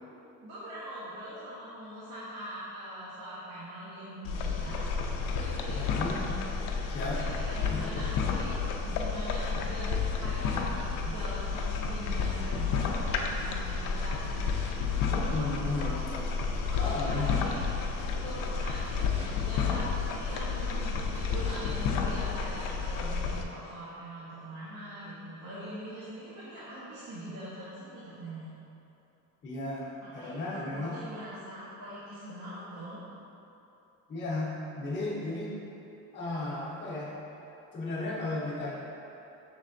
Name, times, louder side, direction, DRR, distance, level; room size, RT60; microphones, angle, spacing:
voice 1, 0.4-4.9 5.3-6.2 7.1-8.5 8.8-14.5 15.1-16.0 16.7-17.6 18.1-28.5 30.0-33.0, right 1 dB, 80° right, -11 dB, 1.0 m, -42 dB
sound 1, 4.2-23.4, left 5 dB, 65° left, 0.5 m, -31 dB
voice 2, 5.8-6.2 6.9-7.2 7.7-7.9 15.1-16.0 16.8-17.4 29.4-31.0 34.1-35.5 36.1-37.1 37.7-38.7, left 2 dB, 30° left, -6 dB, 0.7 m, -34 dB
sound 2, 13.4-22.4, left 1 dB, 20° right, 0.8 m, -50 dB
6.0 x 3.2 x 2.5 m, 2.9 s
cardioid pair, 180°, 35 cm